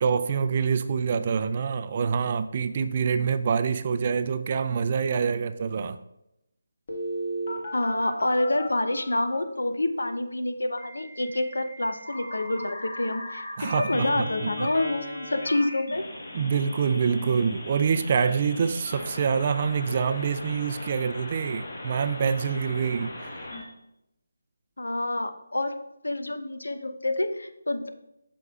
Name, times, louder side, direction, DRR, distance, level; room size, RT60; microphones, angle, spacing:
voice 1, 0.0-6.0 13.6-14.7 16.3-23.3, right 6 dB, 35° right, 11 dB, 0.3 m, -26 dB
Telephone, 6.9-9.4 10.8-23.6, equal, 50° left, 1.4 m, -37 dB
voice 2, 7.7-16.1 24.8-27.9, left 1 dB, 90° left, 9 dB, 0.6 m, -28 dB
7.9 x 6.0 x 2.4 m, 0.85 s
figure-of-eight pair, 165°, 0 cm